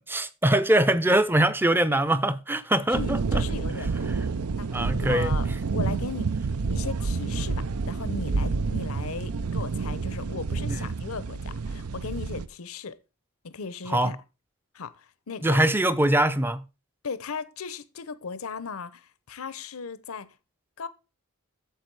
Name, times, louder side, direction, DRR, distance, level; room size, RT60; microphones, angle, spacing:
voice 1, 0.1-3.4 4.7-5.5 10.8-10.9 13.9-14.2 15.4-16.6, right 1 dB, 10° right, 0.5 m, -23 dB
voice 2, 2.9-4.1 4.6-6.3 6.7-13.0 13.4-14.2 14.7-15.7 17.0-20.3 20.8-20.9, left 5 dB, 80° left, 0.7 m, -37 dB
sound 1, 2.9-12.5, right 4 dB, 90° right, 0.6 m, -29 dB
9.3 x 7.2 x 4.7 m
head